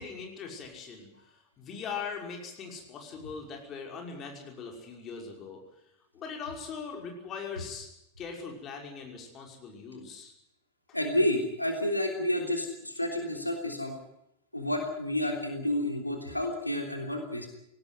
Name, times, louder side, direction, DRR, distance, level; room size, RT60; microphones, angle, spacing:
voice 1, 0.0-5.6 6.1-7.9 8.2-10.3, left 5 dB, 30° left, 2 dB, 5.7 m, -41 dB
voice 2, 10.9-13.9 14.5-17.5, left 1 dB, 85° left, 3 dB, 3.3 m, -30 dB
20.0 x 18.0 x 9.6 m, 0.82 s
figure-of-eight pair, 90°, 0 cm